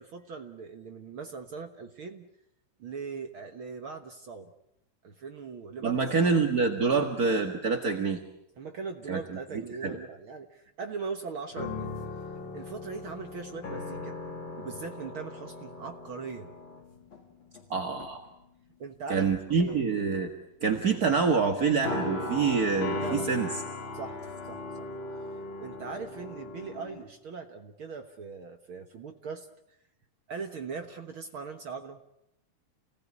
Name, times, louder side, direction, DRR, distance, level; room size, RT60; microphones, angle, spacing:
voice 1, 0.0-2.3 2.8-4.5 5.0-6.5 6.8-6.9 8.6-11.9 12.5-14.2 14.6-16.5 18.8-19.3 19.5-19.8 23.0-23.3 23.9-24.2 24.4-24.9 25.3-29.5 30.3-32.0, right 5 dB, 60° right, 6 dB, 1.4 m, -40 dB
voice 2, 5.8-8.2 9.1-9.2 9.5-10.0 17.7-18.2 19.1-20.3 20.6-23.5, right 5 dB, 40° right, 4 dB, 1.3 m, -26 dB
sound 1, 11.5-17.6 18.0-18.3 19.2-20.0 21.8-27.0, left 3 dB, 35° left, 3.3 m, -38 dB
29.5 x 19.0 x 9.9 m, 0.84 s
omnidirectional pair, 4.2 m